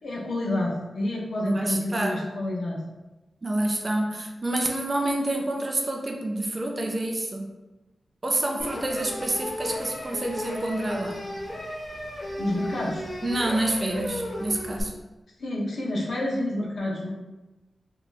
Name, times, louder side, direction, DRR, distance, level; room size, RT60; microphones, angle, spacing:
voice 1, 0.0-2.8 12.4-13.1 15.4-17.1, left 1 dB, 70° left, -4 dB, 0.8 m, -28 dB
voice 2, 1.4-2.2 3.4-7.5 8.2-11.2 13.2-14.9, right 1 dB, 30° right, 1 dB, 0.4 m, -28 dB
sound 1, 8.6-14.8, left 1 dB, 40° left, 0.8 m, -35 dB
2.8 x 2.4 x 3.9 m, 1.1 s
wide cardioid pair, 170°, 0 cm